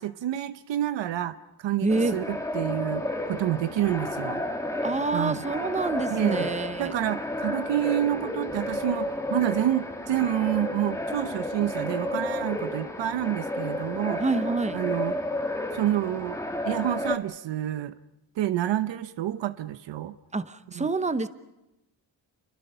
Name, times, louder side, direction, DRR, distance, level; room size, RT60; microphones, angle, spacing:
voice 1, 0.0-4.4 5.1-5.4 6.1-6.5 6.8-14.2 14.7-15.2 15.7-16.4 16.7-17.9 18.4-20.1 20.7-20.9, right 12 dB, 90° right, 12 dB, 0.9 m, -28 dB
voice 2, 1.8-2.2 4.8-6.9 14.2-14.8 20.3-21.3, right 3 dB, 15° right, 12 dB, 0.9 m, -27 dB
sound 1, 1.9-17.2, left 1 dB, 5° left, 1.9 m, -32 dB
29.0 x 23.5 x 5.7 m, 0.95 s
cardioid pair, 130°, 43 cm